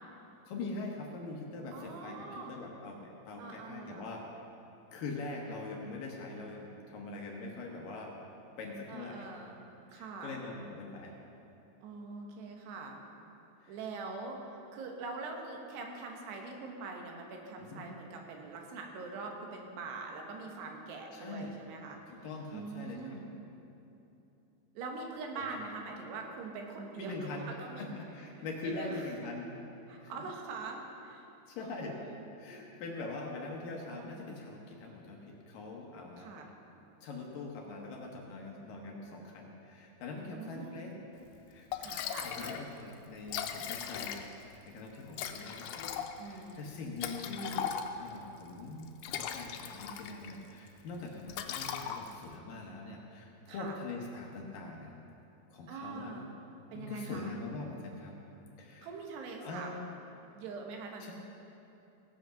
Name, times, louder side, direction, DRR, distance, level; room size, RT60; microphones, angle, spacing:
voice 1, 0.5-4.2 4.9-8.1 8.6-9.3 9.9-11.1 13.6-13.8 17.7-17.9 21.1-21.5 22.1-23.2 25.3-25.4 27.0-27.5 27.8-29.5 30.0-30.2 31.5-32.0 32.4-36.3 37.0-41.7 42.2-44.2 44.7-47.7 48.0-55.0 55.5-56.1 56.7-58.2 58.6-58.9 59.4-59.9 61.0-61.1, left 3 dB, 70° left, 0 dB, 2.4 m, -43 dB
voice 2, 1.7-2.6 3.4-4.1 8.9-10.4 11.8-13.0 13.7-22.3 22.5-23.2 24.7-29.0 29.9-31.3 31.6-32.3 36.2-36.5 40.4-40.8 41.8-42.6 46.2-46.7 53.5-53.7 55.7-56.3 56.7-57.4 58.8-59.7 60.3-61.1, right 4 dB, 85° right, 1 dB, 3.4 m, -43 dB
Liquid, 41.4-41.5 41.7-42.6 42.9-43.0 43.2-44.5 45.1-48.2 48.8-50.4 50.7-50.9 51.3-52.3, left 8 dB, 90° left, 2.9 m, -38 dB
16.5 x 7.8 x 5.8 m, 2.9 s
omnidirectional pair, 4.8 m